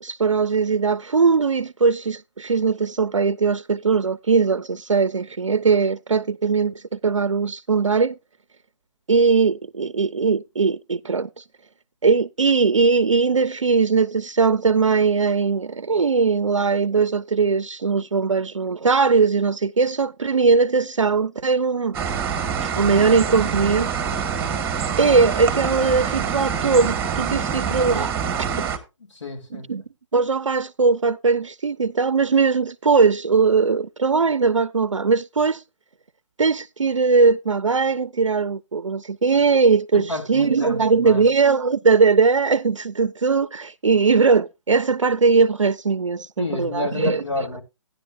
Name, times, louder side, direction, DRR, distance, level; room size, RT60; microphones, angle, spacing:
voice 1, 0.0-8.1 9.1-11.4 12.0-22.0 22.6-23.9 25.0-28.1 29.5-29.8 30.1-35.6 36.4-47.2, right 4 dB, 90° right, 0.4 m, -20 dB
sound 1, 21.9-28.8, right 7 dB, 15° right, 1.4 m, -25 dB
voice 2, 29.1-29.7 39.9-41.3 46.4-47.6, left 2 dB, 70° left, 2.7 m, -30 dB
13.5 x 9.9 x 2.6 m
figure-of-eight pair, 135°, 16 cm